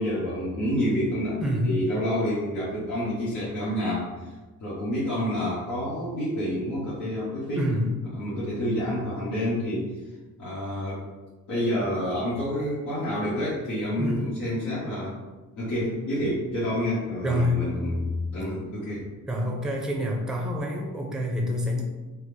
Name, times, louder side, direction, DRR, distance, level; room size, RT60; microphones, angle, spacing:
voice 1, 0.0-4.3 4.6-7.6 8.1-9.9 10.4-11.0 11.5-15.1 15.6-19.1, equal, 80° left, -11 dB, 1.2 m, -28 dB
voice 2, 1.4-1.8 7.6-8.0 14.0-14.3 17.2-17.6 19.3-21.8, left 1 dB, ahead, -1 dB, 0.6 m, -27 dB
3.8 x 2.0 x 3.3 m, 1.2 s
cardioid pair, 90°, 30 cm